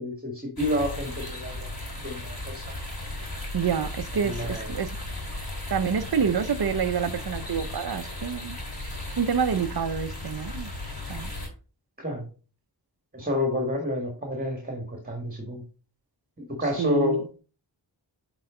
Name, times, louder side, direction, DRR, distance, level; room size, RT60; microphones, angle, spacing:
voice 1, 0.0-1.7 2.0-2.6 4.2-4.7 12.0-12.3 13.1-15.6 16.6-17.2, left 1 dB, 20° right, 1.9 m, -29 dB
sound 1, 0.6-11.5, left 1 dB, 50° left, 3.2 m, -36 dB
voice 2, 3.5-5.0 5.7-8.6 9.1-10.7 11.1-11.3 16.8-17.3, right 7 dB, 55° right, 0.7 m, -27 dB
7.8 x 4.0 x 3.8 m
cardioid pair, 40°, 45 cm